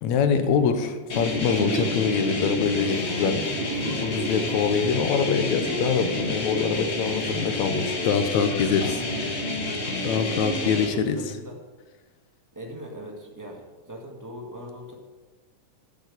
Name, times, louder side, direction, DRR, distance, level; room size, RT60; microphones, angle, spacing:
voice 1, 0.0-3.5 4.0-9.4 10.0-11.2, left 6 dB, 70° left, 8 dB, 2.2 m, -24 dB
sound 1, 1.1-10.9, left 1 dB, 35° left, 1.1 m, -29 dB
Liquid, 1.5-9.1 9.6-9.7, equal, 70° right, 5.6 m, -35 dB
voice 2, 8.6-9.5 9.9-11.6 12.5-15.0, equal, 10° right, 0 dB, 0.9 m, -40 dB
9.3 x 8.7 x 8.3 m, 1.3 s
omnidirectional pair, 3.6 m